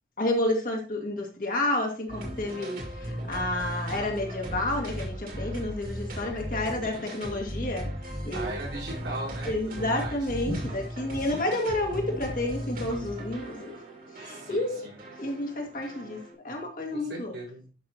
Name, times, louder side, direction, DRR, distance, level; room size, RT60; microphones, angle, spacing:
voice 1, 0.2-7.9 8.2-8.6 9.5-13.8 14.2-14.8 15.2-16.2 16.4-17.3, left 1 dB, 50° left, 1 dB, 2.2 m, -30 dB
sound 1, 2.1-16.3, equal, 50° right, 2.3 m, -37 dB
voice 2, 6.8-7.2 8.3-10.7 11.1-11.5 14.2-15.0 16.9-17.7, right 1 dB, 90° right, -4 dB, 5.4 m, -38 dB
11.0 x 5.9 x 2.9 m, 0.34 s
head